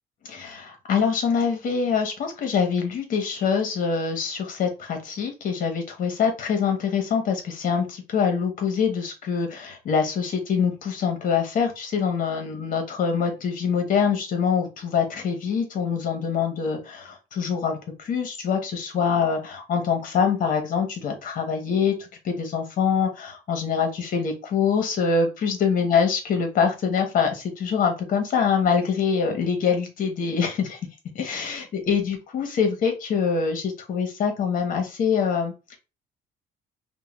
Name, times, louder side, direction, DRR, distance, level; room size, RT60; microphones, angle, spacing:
voice 1, 0.2-30.8 31.1-35.8, left 6 dB, 55° left, 4 dB, 0.9 m, -24 dB
2.6 x 2.2 x 3.2 m, 0.29 s
cardioid pair, 110°, 17 cm